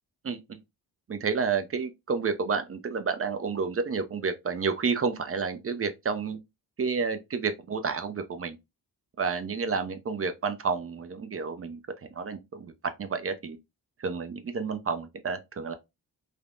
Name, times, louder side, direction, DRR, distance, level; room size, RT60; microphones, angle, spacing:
voice 1, 1.1-6.4 6.8-8.6 9.2-11.8 12.1-13.6 14.0-15.7, right 5 dB, 35° right, 0.5 m, -30 dB
3.2 x 2.0 x 2.4 m
cardioid pair, 65°, 42 cm